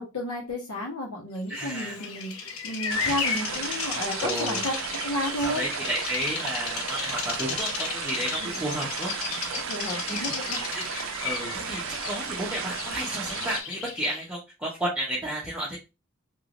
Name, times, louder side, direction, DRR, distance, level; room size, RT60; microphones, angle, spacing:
voice 1, 0.0-2.3 2.6-4.7 5.0-5.6 8.4-8.6 9.5-10.6, left 1 dB, 85° left, -1 dB, 1.4 m, -32 dB
voice 2, 1.5-2.0 3.0-3.9 4.2-4.7 5.4-9.1 9.4-10.8 11.2-15.8, right 1 dB, 5° right, -7 dB, 0.8 m, -33 dB
Bird vocalization bird call bird song, 1.6-14.3, left 6 dB, 70° left, 0.7 m, -34 dB
sound 1, 2.9-13.6, right 7 dB, 60° right, 0.4 m, -34 dB
3.4 x 2.9 x 2.4 m, 0.27 s
head